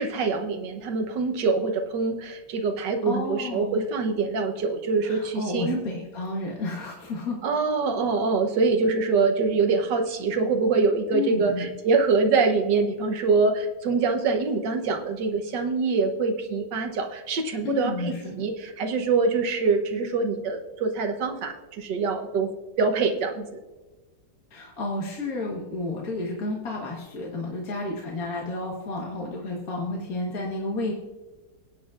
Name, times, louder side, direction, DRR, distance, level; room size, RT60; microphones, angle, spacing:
voice 1, 0.0-5.8 7.4-22.5 22.8-23.5, right 4 dB, 75° right, 5 dB, 1.6 m, -24 dB
voice 2, 3.0-3.8 5.0-7.4 11.1-11.7 17.6-18.4 24.5-30.9, left 2 dB, 55° left, -2 dB, 1.8 m, -31 dB
21.5 x 9.2 x 2.5 m, 1.2 s
omnidirectional pair, 1.9 m